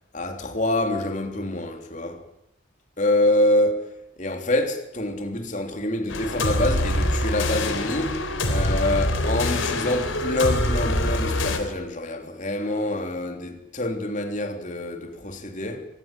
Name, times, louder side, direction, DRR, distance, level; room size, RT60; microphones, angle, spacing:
voice 1, 0.1-2.2 3.0-3.9 4.2-15.9, left 1 dB, 40° left, 3.3 m, -26 dB
sound 1, 6.1-11.6, left 1 dB, 80° left, 3.8 m, -24 dB
25.0 x 19.5 x 9.2 m
head